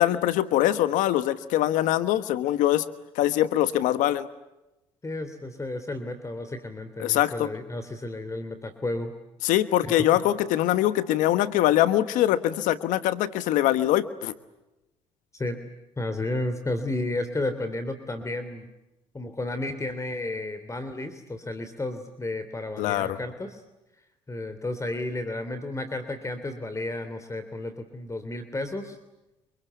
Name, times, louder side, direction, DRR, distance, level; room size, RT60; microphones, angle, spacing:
voice 1, 0.0-2.9 3.1-4.3 7.0-7.5 9.4-14.3 22.8-23.2, left 13 dB, 80° left, 13 dB, 1.2 m, -23 dB
voice 2, 5.0-9.1 9.8-10.1 15.3-15.6 16.0-18.7 19.1-23.6 24.3-29.0, left 2 dB, 25° left, 10 dB, 3.1 m, -32 dB
26.5 x 25.0 x 8.3 m, 0.96 s
supercardioid pair, 65°, 13 cm